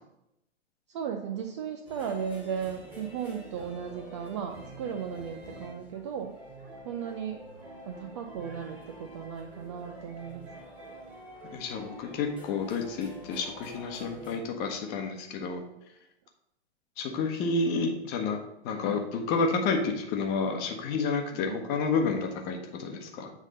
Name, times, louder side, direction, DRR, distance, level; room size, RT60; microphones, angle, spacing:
voice 1, 0.9-6.4 6.8-7.5 7.9-10.5 21.3-21.6, right 7 dB, 25° right, 5 dB, 0.4 m, -36 dB
sound 1, 1.9-14.4, equal, 5° right, 1.8 m, -47 dB
voice 2, 11.5-15.6 17.0-23.3, left 4 dB, 25° left, 3 dB, 1.0 m, -30 dB
7.9 x 3.6 x 5.1 m, 0.86 s
figure-of-eight pair, 115°, 35 cm